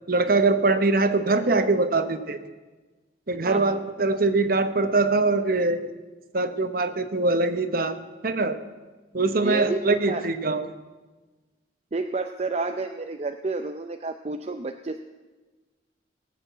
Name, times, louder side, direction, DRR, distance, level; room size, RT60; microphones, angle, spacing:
voice 1, 0.1-2.4 3.3-5.9 6.3-8.6 9.1-10.7, right 3 dB, 50° right, 10 dB, 0.9 m, -23 dB
voice 2, 3.4-3.8 9.4-9.8 10.1-10.2 11.9-15.0, right 3 dB, 35° right, 7 dB, 0.5 m, -30 dB
18.5 x 7.1 x 7.9 m, 1.3 s
head